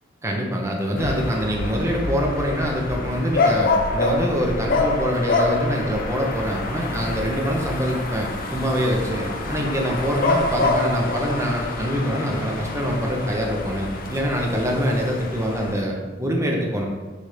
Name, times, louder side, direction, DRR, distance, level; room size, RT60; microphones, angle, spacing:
voice 1, 0.2-16.9, equal, 15° right, 0 dB, 0.9 m, -24 dB
sound 1, 1.0-15.8, left 2 dB, 50° left, 0.7 m, -26 dB
9.9 x 3.4 x 3.3 m, 1.3 s
head